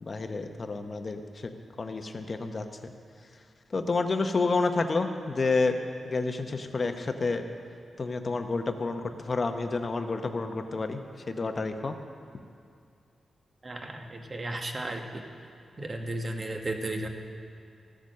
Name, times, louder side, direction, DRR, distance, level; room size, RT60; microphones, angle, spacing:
voice 1, 0.0-1.5 1.8-2.7 3.7-7.4 8.0-11.0 11.3-11.9, left 3 dB, 35° left, 6 dB, 0.8 m, -29 dB
voice 2, 13.6-15.3 15.8-17.1, right 2 dB, 35° right, 4 dB, 1.1 m, -34 dB
14.5 x 8.4 x 6.5 m, 2.4 s
wide cardioid pair, 130°, 0 cm